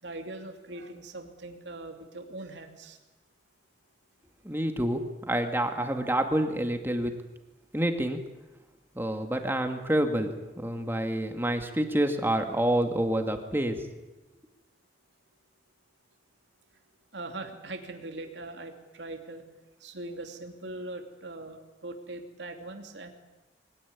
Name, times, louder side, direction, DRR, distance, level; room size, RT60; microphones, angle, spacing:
voice 1, 0.0-3.0 17.1-19.5 19.8-23.1, right 2 dB, 90° right, 4 dB, 2.8 m, -41 dB
voice 2, 4.4-7.2 7.7-8.2 9.0-13.8, right 1 dB, 15° right, 5 dB, 2.1 m, -28 dB
23.0 x 17.5 x 9.8 m, 1.1 s
head